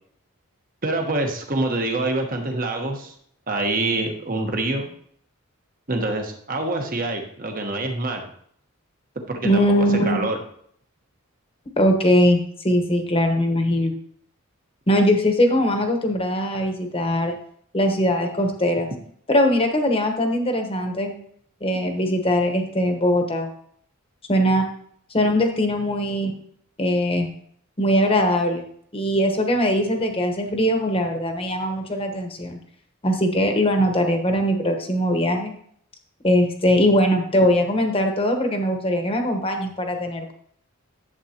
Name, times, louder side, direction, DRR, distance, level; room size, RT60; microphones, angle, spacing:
voice 1, 0.8-3.1 3.5-4.9 5.9-8.2 9.3-10.4, right 2 dB, 40° right, 3 dB, 1.2 m, -26 dB
voice 2, 9.4-10.3 11.8-13.9 14.9-17.3 17.7-18.9 19.3-21.1 21.6-23.5 24.3-24.7 25.1-26.3 26.8-27.3 27.8-28.6 28.9-32.6 33.0-35.5 36.2-40.3, equal, 25° left, 4 dB, 1.1 m, -21 dB
11.0 x 7.7 x 2.9 m, 0.64 s
head